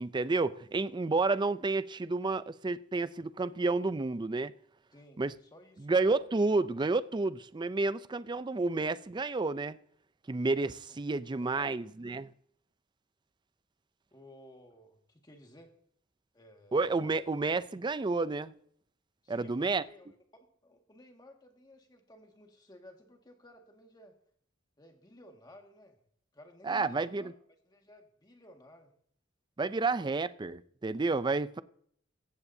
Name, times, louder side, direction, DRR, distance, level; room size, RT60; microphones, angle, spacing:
voice 1, 0.0-4.5 5.2-5.4 5.8-9.8 10.3-12.3 16.7-18.5 19.3-19.8 26.6-27.2 29.6-31.6, right 3 dB, 25° right, 0.4 m, -30 dB
voice 2, 4.9-6.1 11.3-11.8 14.1-15.7 16.3-17.2 19.2-24.2 24.8-26.0 26.3-27.3 27.6-28.9, left 1 dB, 20° left, 1.8 m, -56 dB
16.5 x 15.0 x 2.7 m
head